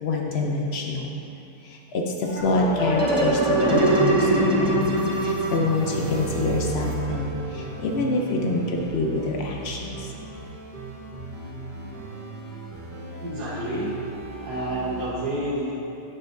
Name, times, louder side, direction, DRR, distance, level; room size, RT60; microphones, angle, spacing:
voice 1, 0.0-1.1 1.6-10.1, left 2 dB, 65° left, 0 dB, 0.6 m, -26 dB
sound 1, 2.3-7.6, right 1 dB, 30° right, 0.6 m, -23 dB
sound 2, 2.4-15.1, right 2 dB, 85° right, 1.7 m, -38 dB
voice 2, 13.2-14.0 14.4-15.7, right 1 dB, 70° right, -11 dB, 1.8 m, -29 dB
9.7 x 6.3 x 2.6 m, 2.9 s
omnidirectional pair, 1.8 m